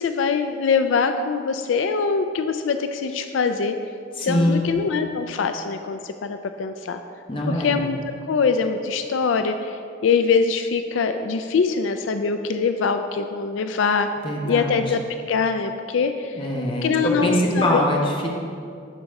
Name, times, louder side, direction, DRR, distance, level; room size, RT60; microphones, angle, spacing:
voice 1, 0.0-3.8 4.2-7.0 7.5-8.0 8.3-14.1 14.5-15.0 15.3-16.4 16.8-17.8, left 5 dB, 80° left, 8 dB, 0.4 m, -23 dB
voice 2, 4.2-4.7 7.3-7.8 14.2-14.8 16.4-18.3, left 1 dB, 25° left, -1 dB, 1.1 m, -23 dB
11.5 x 4.1 x 4.8 m, 2.4 s
head